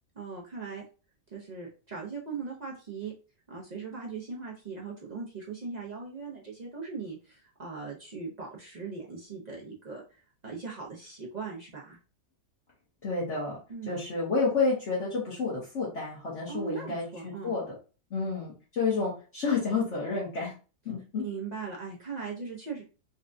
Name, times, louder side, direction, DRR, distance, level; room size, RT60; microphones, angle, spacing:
voice 1, 0.2-0.8 1.3-3.1 3.5-12.0 13.7-14.0 16.5-17.5 21.2-22.8, right 5 dB, 60° right, -3 dB, 0.4 m, -39 dB
voice 2, 13.0-13.6 13.9-17.6 18.1-20.5 20.8-21.3, left 4 dB, 50° left, -6 dB, 1.2 m, -30 dB
4.1 x 2.2 x 2.5 m, 0.35 s
omnidirectional pair, 1.7 m